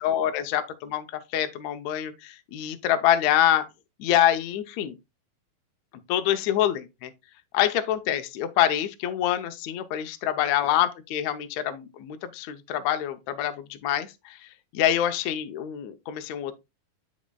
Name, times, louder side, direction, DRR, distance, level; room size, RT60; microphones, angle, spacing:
voice 1, 0.0-3.7 4.0-5.0 6.1-7.1 7.5-14.5 14.7-16.5, left 11 dB, 75° left, 1.7 m, -26 dB
10.5 x 5.2 x 2.2 m
omnidirectional pair, 3.9 m